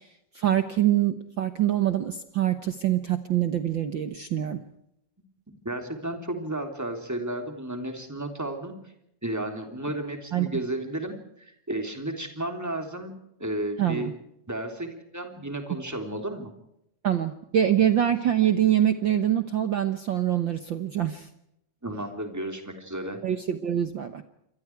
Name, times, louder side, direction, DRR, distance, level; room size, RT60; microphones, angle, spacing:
voice 1, 0.3-4.6 10.3-10.5 13.8-14.1 17.0-21.3 23.2-24.2, right 11 dB, 75° right, 9 dB, 1.0 m, -24 dB
voice 2, 5.5-8.7 9.2-13.1 13.4-14.1 14.5-16.5 21.8-23.2, right 1 dB, 5° right, 5 dB, 3.0 m, -33 dB
28.0 x 25.0 x 4.7 m, 0.78 s
omnidirectional pair, 3.7 m